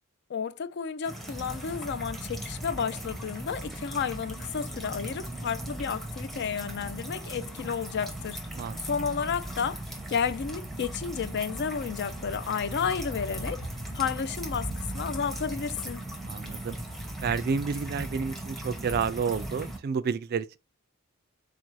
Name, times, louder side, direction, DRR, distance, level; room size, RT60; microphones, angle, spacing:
voice 1, 0.3-8.4 8.8-9.8 10.1-13.6 13.9-16.1, left 6 dB, 55° left, 0.4 m, -32 dB
sound 1, 1.0-19.8, right 1 dB, ahead, 0.8 m, -38 dB
voice 2, 16.3-16.8 17.2-20.6, right 6 dB, 45° right, 0.3 m, -30 dB
3.9 x 2.6 x 4.6 m
head